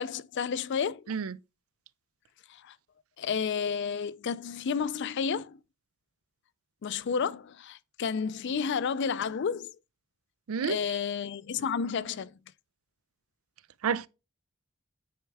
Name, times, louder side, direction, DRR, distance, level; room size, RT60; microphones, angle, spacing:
voice 1, 0.0-1.1 2.5-2.8 3.2-5.6 6.8-9.7 10.7-12.3, left 6 dB, 55° left, 0.4 m, -31 dB
voice 2, 1.1-1.4 10.5-10.8 13.8-14.1, right 6 dB, 85° right, 0.4 m, -29 dB
9.2 x 4.4 x 3.4 m
head